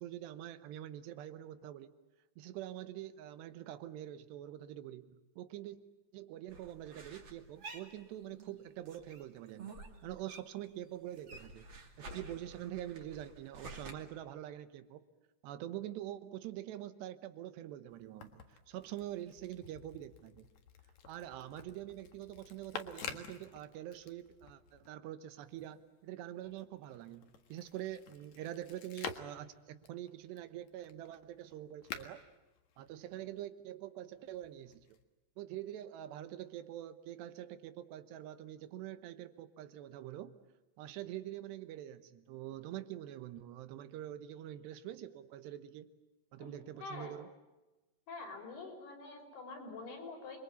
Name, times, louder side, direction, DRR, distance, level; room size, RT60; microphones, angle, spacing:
voice 1, 0.0-1.9 2.4-5.8 6.1-9.8 10.0-11.7 12.0-15.1 15.4-20.5 21.1-32.2 32.8-35.0 35.4-40.3 40.8-45.9 46.3-47.3, right 12 dB, 85° right, 11 dB, 3.3 m, -45 dB
sound 1, 6.5-8.6 8.9-10.7 11.0-13.9, right 2 dB, 35° right, 2.8 m, -50 dB
sound 2, 17.9-24.9 25.3-33.4 34.3-35.0, left 7 dB, 55° left, 2.4 m, -50 dB
voice 2, 46.8-47.1 48.1-50.4, left 3 dB, 70° left, 1 dB, 7.3 m, -46 dB
28.5 x 22.5 x 8.4 m, 1.1 s
omnidirectional pair, 4.8 m